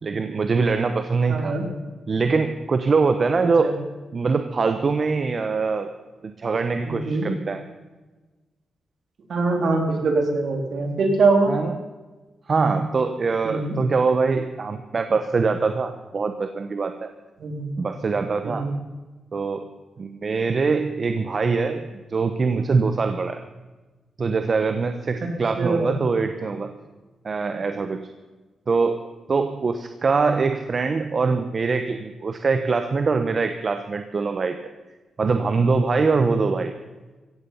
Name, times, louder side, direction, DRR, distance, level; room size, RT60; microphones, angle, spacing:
voice 1, 0.0-1.5 2.1-3.8 4.1-5.9 6.2-7.6 11.5-11.8 12.5-17.1 17.8-18.7 19.3-19.7 20.0-23.4 24.2-26.7 27.2-28.1 28.7-34.6 35.2-36.7, right 4 dB, 50° right, 8 dB, 1.1 m, -23 dB
voice 2, 1.3-1.7 3.6-3.7 6.9-7.3 9.3-11.5 13.4-13.8 17.4-17.7 18.4-18.7 25.2-25.3 25.6-26.0, right 3 dB, 65° right, 3 dB, 3.8 m, -23 dB
16.5 x 15.0 x 5.7 m, 1.2 s
cardioid pair, 70°, 0 cm